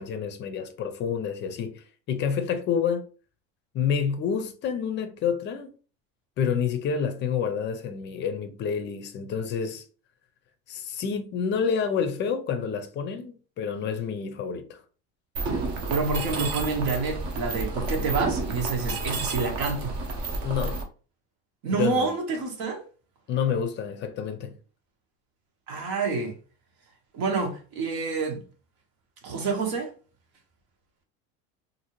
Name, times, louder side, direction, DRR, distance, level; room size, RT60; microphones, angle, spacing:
voice 1, 0.0-3.0 3.7-5.7 6.4-9.8 10.7-14.8 20.4-20.8 21.7-22.1 23.3-24.5, left 7 dB, 35° left, 0.4 m, -28 dB
Mechanisms, 15.4-20.8, right 3 dB, 50° right, 0.8 m, -30 dB
voice 2, 15.9-19.9 21.6-22.8 25.7-26.4 27.1-28.4 29.2-29.9, right 4 dB, 75° right, 1.1 m, -28 dB
2.7 x 2.6 x 2.9 m
cardioid pair, 140°, 31 cm